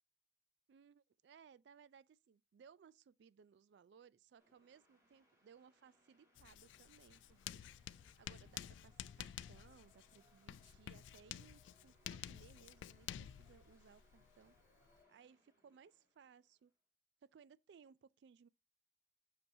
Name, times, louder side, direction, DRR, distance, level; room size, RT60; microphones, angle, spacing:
voice 1, 0.7-7.9 8.2-14.6 15.1-16.7 17.2-18.5, right 6 dB, 65° right, 0.3 m, -64 dB
sound 1, 4.4-16.7, equal, 20° right, 2.9 m, -74 dB
Writing, 6.4-15.0, left 10 dB, 85° left, 0.3 m, -51 dB
6.8 x 5.4 x 2.7 m
head